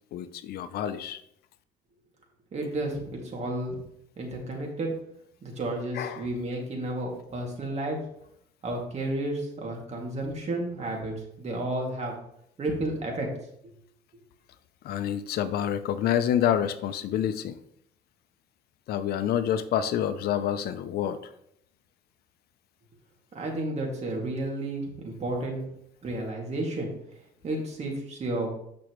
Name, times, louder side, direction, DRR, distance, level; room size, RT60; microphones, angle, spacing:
voice 1, 0.1-1.2 5.9-6.3 14.8-17.6 18.9-21.3, left 10 dB, 70° left, 12 dB, 0.6 m, -28 dB
voice 2, 2.5-3.8 4.2-4.9 5.4-8.0 8.6-12.1 12.6-13.3 13.6-13.7 23.3-25.7 26.0-28.5, right 1 dB, 40° right, 0 dB, 2.3 m, -32 dB
8.4 x 6.0 x 3.1 m, 0.73 s
cardioid pair, 110°, 17 cm